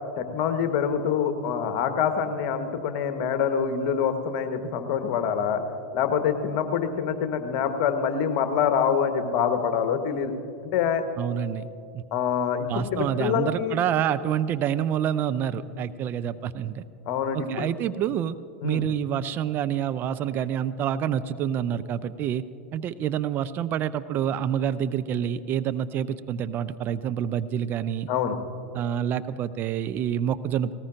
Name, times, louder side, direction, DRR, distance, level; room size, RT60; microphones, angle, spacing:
voice 1, 0.2-5.6 5.9-10.3 10.6-11.0 12.1-13.8 17.0-17.7 18.6-18.9 28.1-28.4, left 7 dB, 50° left, 8 dB, 1.2 m, -25 dB
voice 2, 11.2-11.7 11.9-12.0 12.7-16.8 17.3-18.4 18.6-22.4 22.7-28.1 28.7-30.7, right 9 dB, 35° right, 13 dB, 0.4 m, -27 dB
19.0 x 18.5 x 2.6 m, 2.5 s
figure-of-eight pair, 90°, 6 cm